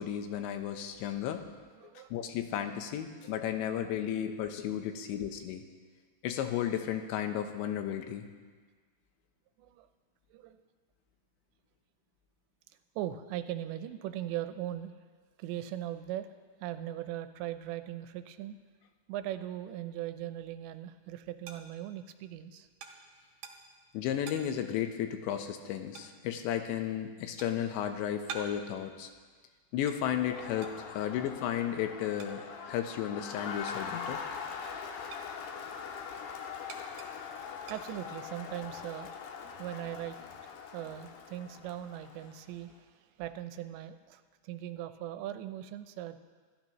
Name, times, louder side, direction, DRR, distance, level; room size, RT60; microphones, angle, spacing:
voice 1, 0.0-1.4 2.1-5.6 6.2-8.3 23.9-29.1 29.7-34.2, left 10 dB, 90° left, 6 dB, 3.2 m, -34 dB
voice 2, 1.8-2.1 3.2-3.4 3.9-4.0 9.6-9.9 10.3-10.6 13.0-14.9 15.4-16.3 16.6-18.6 19.1-22.7 37.7-39.1 39.6-42.9 43.2-46.2, right 12 dB, 90° right, 10 dB, 3.0 m, -39 dB
sound 1, 20.5-34.3 34.6-38.5, right 5 dB, 60° right, 2.5 m, -50 dB
Crowd, 30.0-42.5, left 6 dB, 75° left, 2.9 m, -42 dB
26.0 x 13.5 x 3.1 m, 1.5 s
omnidirectional pair, 5.1 m